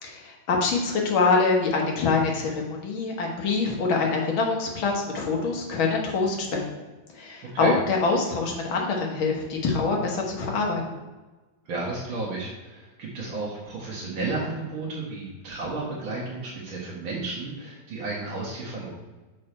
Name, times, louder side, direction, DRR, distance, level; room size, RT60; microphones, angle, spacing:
voice 1, 0.0-6.9 7.1-10.8, left 4 dB, 85° left, 0 dB, 2.1 m, -25 dB
voice 2, 11.7-18.9, right 3 dB, 80° right, -6 dB, 2.2 m, -32 dB
6.6 x 5.6 x 4.3 m, 1.2 s
omnidirectional pair, 2.2 m